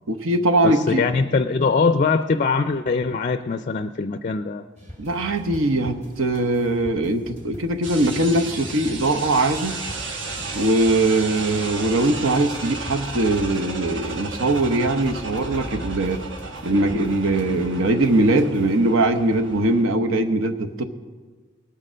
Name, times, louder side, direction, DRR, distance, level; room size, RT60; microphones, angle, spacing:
voice 1, 0.1-1.1 5.0-9.8 10.5-16.2 16.6-20.8, right 2 dB, 80° right, 7 dB, 1.0 m, -21 dB
voice 2, 0.6-4.6, left 4 dB, 35° left, 10 dB, 0.4 m, -22 dB
sound 1, 4.8-18.8, left 1 dB, 35° right, 2.7 m, -42 dB
sound 2, 7.8-19.8, right 3 dB, 60° right, 1.3 m, -34 dB
19.5 x 6.7 x 6.2 m, 1.4 s
head